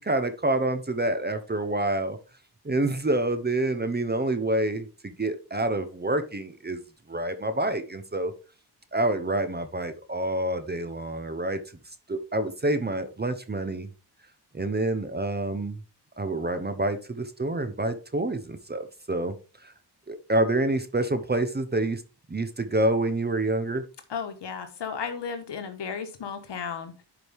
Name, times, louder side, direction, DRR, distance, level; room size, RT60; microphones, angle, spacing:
voice 1, 0.0-2.2 2.6-6.8 7.1-8.3 8.9-11.6 12.1-13.9 14.5-15.8 16.2-19.3 19.6-19.7 20.1-22.0 22.3-23.8, right 2 dB, 25° right, 9 dB, 0.9 m, -27 dB
voice 2, 24.1-27.0, left 6 dB, 90° left, 7 dB, 1.4 m, -34 dB
11.0 x 5.0 x 3.5 m, 0.33 s
wide cardioid pair, 100°, 41 cm